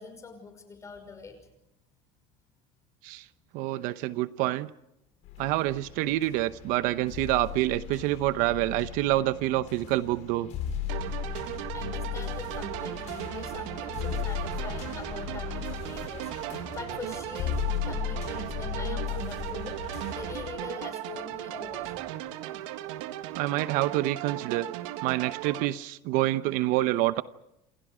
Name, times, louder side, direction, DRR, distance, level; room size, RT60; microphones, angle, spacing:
voice 1, 0.0-1.4 11.7-17.5 17.8-19.8 20.1-22.1, left 4 dB, 20° left, 7 dB, 5.7 m, -43 dB
voice 2, 3.5-4.7 5.4-10.5 23.3-24.7 25.0-27.2, right 16 dB, 60° right, 13 dB, 0.9 m, -27 dB
sound 1, 5.2-20.5, left 8 dB, 45° left, 6.9 m, -36 dB
sound 2, 10.9-25.6, right 14 dB, 80° right, 1.8 m, -37 dB
28.5 x 28.0 x 5.0 m, 0.84 s
cardioid pair, 165°, 16 cm